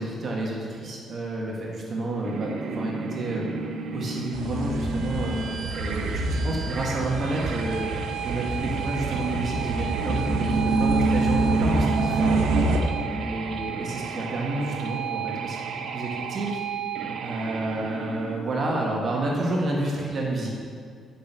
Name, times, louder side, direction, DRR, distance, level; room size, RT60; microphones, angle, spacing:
voice 1, 0.0-3.5 3.9-5.4 5.7-7.8 8.2-12.4 13.2-16.6 17.2-20.5, right 2 dB, 45° right, -2 dB, 1.9 m, -29 dB
sound 1, 2.2-18.4, right 5 dB, 70° right, 0.9 m, -33 dB
sound 2, 4.3-12.8, right 2 dB, 90° right, 1.1 m, -26 dB
10.0 x 6.2 x 7.0 m, 2.2 s
cardioid pair, 90°, 0 cm